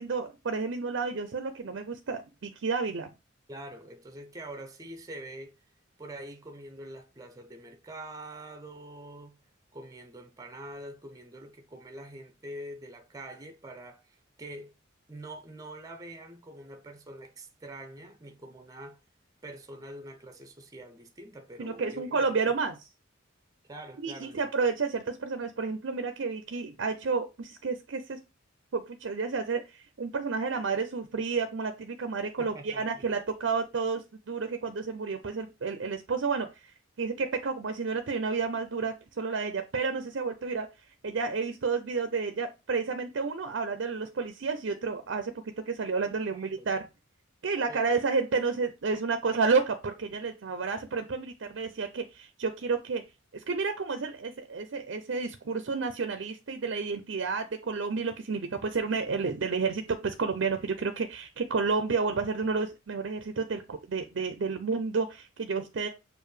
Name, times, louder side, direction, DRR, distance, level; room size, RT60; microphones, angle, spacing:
voice 1, 0.0-3.1 21.6-22.7 24.0-28.2 28.7-40.7 41.0-46.8 47.4-53.0 53.3-65.9, right 4 dB, 60° right, 0.5 m, -31 dB
voice 2, 3.5-5.6 6.0-9.4 9.7-14.7 15.1-19.0 19.4-22.6 23.6-24.5 32.4-33.1 46.3-46.7 47.7-47.9, right 1 dB, 15° right, 0.6 m, -45 dB
6.6 x 2.6 x 3.2 m
head